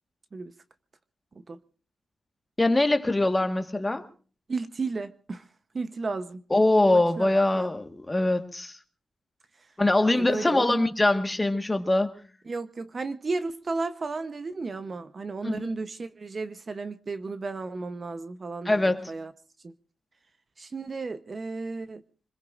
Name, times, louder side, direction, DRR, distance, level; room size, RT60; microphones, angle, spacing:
voice 1, 2.6-4.0 6.5-8.8 9.8-12.1 15.4-15.7 18.6-19.1, left 2 dB, 15° left, 1.6 m, -23 dB
voice 2, 4.5-5.4 5.7-6.4 7.2-7.7 10.1-10.9 12.5-19.3 19.6-19.7 20.6-22.0, right 3 dB, 35° right, 0.9 m, -33 dB
26.0 x 21.0 x 2.5 m
wide cardioid pair, 125°, 0 cm